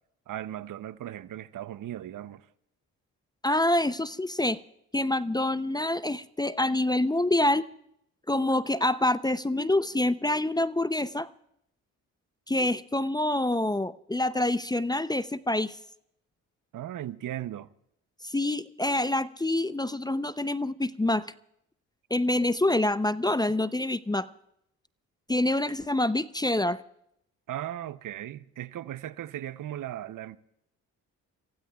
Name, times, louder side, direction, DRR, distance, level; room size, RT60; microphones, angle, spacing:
voice 1, 0.3-2.5 16.7-17.7 27.5-30.4, right 12 dB, 60° right, 0.7 m, -37 dB
voice 2, 3.4-4.6 4.9-7.7 8.3-11.3 12.5-15.8 18.2-21.3 22.1-24.3 25.3-26.8, left 1 dB, 10° left, 0.5 m, -26 dB
29.0 x 16.5 x 2.3 m
supercardioid pair, 60°, 36 cm